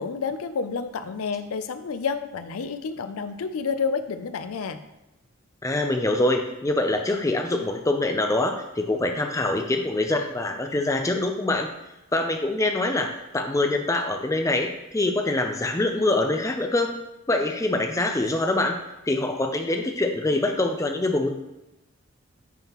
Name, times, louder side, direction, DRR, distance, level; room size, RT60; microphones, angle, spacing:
voice 1, 0.0-4.8, left 5 dB, 85° left, 10 dB, 0.4 m, -29 dB
voice 2, 5.6-11.7 12.1-16.9 17.3-18.8 19.1-21.3, left 2 dB, 15° left, 4 dB, 0.4 m, -24 dB
9.2 x 3.6 x 3.0 m, 0.97 s
head